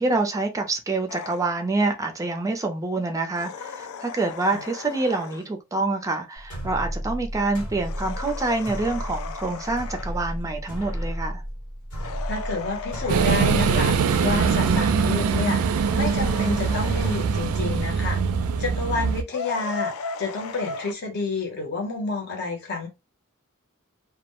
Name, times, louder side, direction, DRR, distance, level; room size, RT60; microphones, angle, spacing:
voice 1, 0.0-11.4, right 3 dB, 15° right, 0.4 m, -26 dB
sound 1, 1.1-1.5 3.3-5.5 7.8-10.2 11.9-14.0 15.7-17.3 19.3-20.9, left 4 dB, 70° left, 0.3 m, -36 dB
sound 2, 6.4-15.9, equal, 85° left, 1.2 m, -33 dB
voice 2, 12.3-14.0 14.2-18.2 18.6-22.9, left 3 dB, 50° left, 0.9 m, -29 dB
sound 3, 13.1-19.2, right 6 dB, 80° right, 0.4 m, -22 dB
2.2 x 2.1 x 2.9 m
head